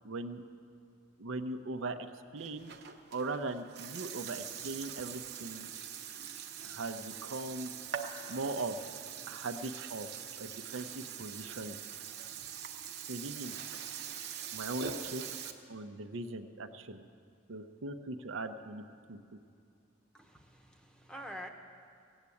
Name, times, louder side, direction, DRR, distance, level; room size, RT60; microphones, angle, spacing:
voice 1, 0.0-0.4 1.2-2.1 2.3-2.8 3.1-5.7 6.6-7.7 8.3-8.8 9.3-10.1 10.4-11.8 13.1-13.6 14.5-15.2 15.7-17.0 17.5-18.8 19.1-19.2, right 2 dB, 85° right, 7 dB, 0.7 m, -39 dB
Burping eructation, 2.4-15.5, right 8 dB, 55° right, 0.9 m, -43 dB
voice 2, 20.1-21.5, equal, 5° left, 3 dB, 0.9 m, -47 dB
17.0 x 8.1 x 8.4 m, 2.3 s
head